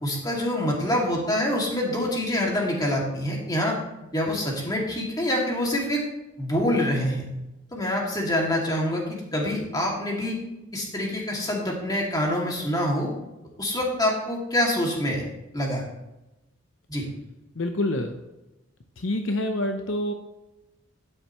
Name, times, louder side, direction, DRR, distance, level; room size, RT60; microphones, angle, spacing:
voice 1, 0.0-3.8 4.1-6.0 6.4-7.3 7.7-10.4 10.7-13.1 13.6-15.2 15.5-15.8 16.9-17.0, left 1 dB, 20° left, -2 dB, 2.3 m, -26 dB
voice 2, 17.5-18.2 19.0-20.1, left 1 dB, 65° left, 5 dB, 0.8 m, -27 dB
12.0 x 9.9 x 3.1 m, 0.97 s
head